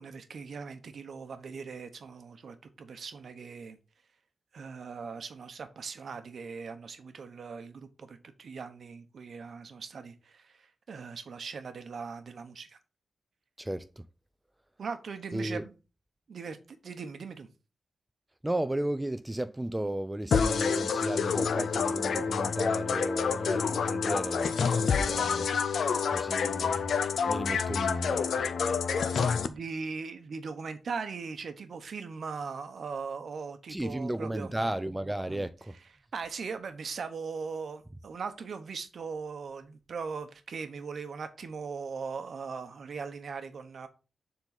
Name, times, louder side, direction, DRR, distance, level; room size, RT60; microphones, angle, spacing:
voice 1, 0.0-3.8 4.5-12.8 14.8-15.7 16.3-17.5 29.4-34.5 35.3-35.4 36.1-43.9, right 5 dB, 60° right, 0.9 m, -39 dB
voice 2, 13.6-14.1 15.3-15.7 18.4-25.5 26.1-26.9 27.2-28.5 33.7-35.8, right 1 dB, 10° right, 0.3 m, -34 dB
sound 1, 20.3-29.5, left 6 dB, 75° left, 0.6 m, -28 dB
7.2 x 3.8 x 3.9 m
wide cardioid pair, 135°, 0 cm